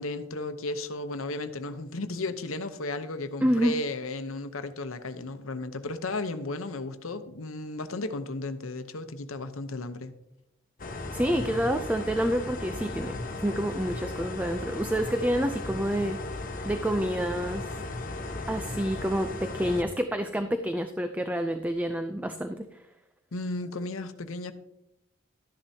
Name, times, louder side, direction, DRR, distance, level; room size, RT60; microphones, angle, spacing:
voice 1, 0.0-10.1 23.3-24.5, left 2 dB, 90° left, 0.9 m, -34 dB
voice 2, 3.4-3.7 11.1-16.2 16.6-17.8 18.5-22.8, equal, 10° right, 0.4 m, -28 dB
sound 1, 10.8-19.8, left 2 dB, 40° left, 1.1 m, -36 dB
12.5 x 10.5 x 2.8 m
head